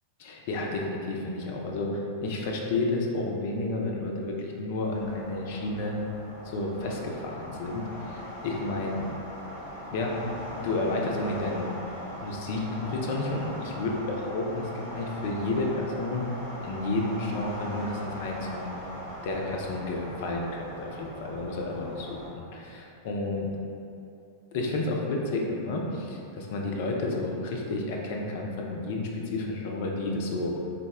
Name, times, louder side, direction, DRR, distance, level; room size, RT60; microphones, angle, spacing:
voice 1, 0.2-6.0 6.4-9.1 9.9-10.2 10.6-11.7 12.2-16.3 16.6-18.7 19.2-23.5 24.5-30.5, left 2 dB, 50° left, 0 dB, 0.5 m, -31 dB
sound 1, 4.8-22.3, equal, 85° right, 1.4 m, -40 dB
4.0 x 2.1 x 3.3 m, 2.7 s
figure-of-eight pair, 90°, 0 cm